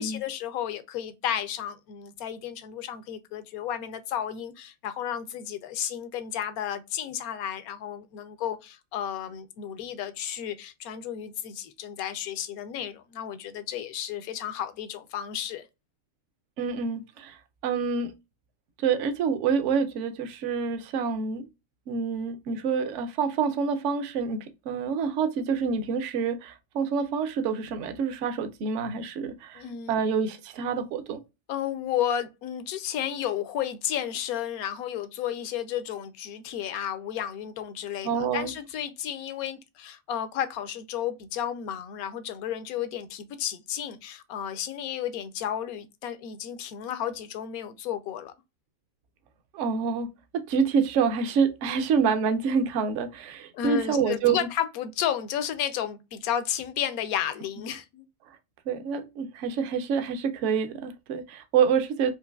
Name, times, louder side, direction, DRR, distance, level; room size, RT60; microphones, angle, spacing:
voice 1, 0.0-15.7 29.5-29.9 31.5-48.3 53.5-58.0, left 10 dB, 80° left, 1.0 m, -32 dB
voice 2, 16.6-18.1 18.8-21.5 21.9-31.2 38.0-38.5 49.5-50.1 50.3-54.5 58.7-62.1, right 6 dB, 65° right, 0.8 m, -27 dB
4.6 x 2.5 x 2.2 m
omnidirectional pair, 1.5 m